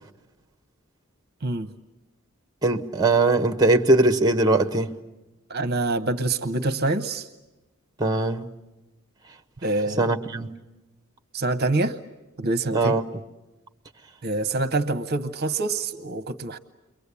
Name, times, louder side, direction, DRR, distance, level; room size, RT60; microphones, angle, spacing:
voice 1, 1.4-1.7 5.5-7.3 9.6-10.1 11.3-12.0 12.4-13.0 14.2-16.6, right 2 dB, 50° right, 0.9 m, -26 dB
voice 2, 2.6-4.9 8.0-8.5 10.0-10.5 12.7-13.0, right 2 dB, 20° right, 1.2 m, -20 dB
30.0 x 23.5 x 8.3 m
head